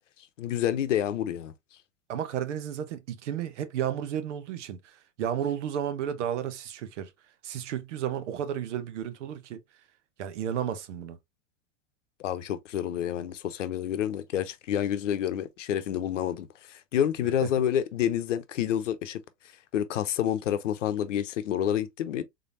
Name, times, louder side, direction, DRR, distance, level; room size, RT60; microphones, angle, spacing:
voice 1, 0.4-1.5 12.2-19.2 19.7-22.2, left 10 dB, 80° left, 0.8 m, -28 dB
voice 2, 2.1-7.1 7.4-9.6 10.2-11.2, right 9 dB, 75° right, 0.9 m, -32 dB
3.8 x 3.4 x 2.5 m
hypercardioid pair, 100°, 37 cm